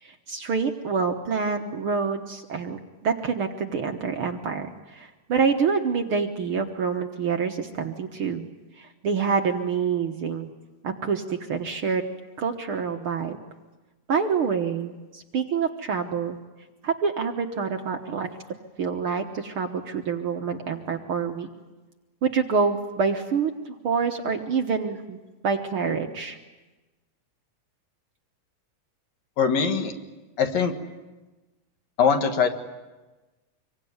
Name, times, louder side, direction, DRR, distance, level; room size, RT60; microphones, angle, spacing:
voice 1, 0.0-8.5 8.8-10.5 10.8-12.0 12.4-13.4 14.1-16.4 16.8-18.3 18.8-21.5 22.2-25.2 25.4-26.4, right 5 dB, 55° right, 4 dB, 1.8 m, -27 dB
voice 2, 29.4-30.0 30.4-30.8 32.0-32.5, left 6 dB, 65° left, 5 dB, 2.9 m, -22 dB
26.0 x 23.5 x 9.6 m, 1.2 s
omnidirectional pair, 3.4 m